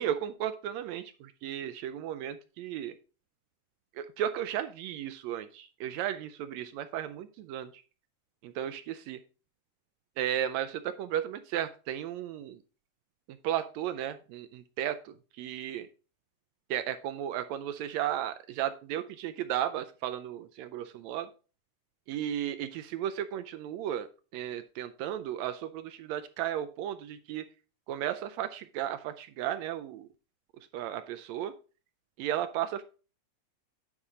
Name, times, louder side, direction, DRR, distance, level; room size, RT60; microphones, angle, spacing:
voice 1, 0.0-3.0 4.0-7.7 8.4-9.2 10.2-12.6 13.4-15.9 16.7-21.3 22.1-24.1 24.3-27.5 27.9-30.1 30.7-31.5 32.2-32.8, right 11 dB, 80° right, 10 dB, 1.7 m, -34 dB
9.7 x 4.2 x 4.9 m, 0.35 s
omnidirectional pair, 3.4 m